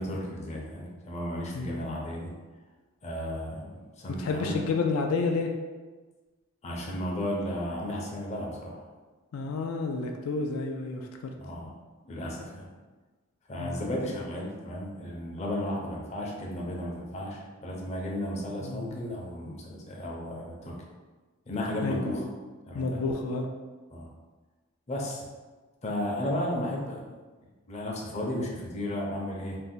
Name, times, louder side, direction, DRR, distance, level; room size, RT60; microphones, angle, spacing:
voice 1, 0.0-2.3 3.0-4.6 6.6-8.8 11.4-11.7 12.0-12.7 13.5-20.8 21.5-22.2 22.7-23.0 23.9-24.1 24.9-25.2 25.8-27.0 27.7-29.6, left 1 dB, 30° left, -2 dB, 0.5 m, -34 dB
voice 2, 4.2-5.5 9.3-11.3 13.6-13.8 18.6-19.0 21.8-22.3 22.7-23.5, left 3 dB, 85° left, 3 dB, 0.3 m, -30 dB
2.6 x 2.1 x 3.6 m, 1.3 s
head